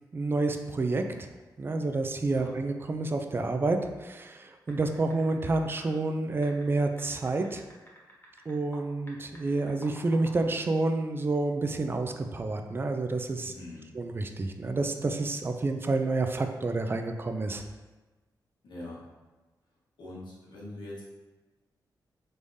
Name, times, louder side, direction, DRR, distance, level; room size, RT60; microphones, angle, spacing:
voice 1, 0.1-1.3 1.6-7.6 8.5-13.5 13.9-17.6, right 2 dB, 30° right, 6 dB, 0.3 m, -29 dB
sound 1, 4.7-5.5 5.8-5.9 6.4-8.8 9.1-10.4, left 1 dB, 25° left, 0.9 m, -50 dB
voice 2, 13.4-13.9 18.6-19.0 20.0-21.0, left 2 dB, 85° left, -6 dB, 1.2 m, -43 dB
3.5 x 3.3 x 2.6 m, 1.2 s
cardioid pair, 85°, 8 cm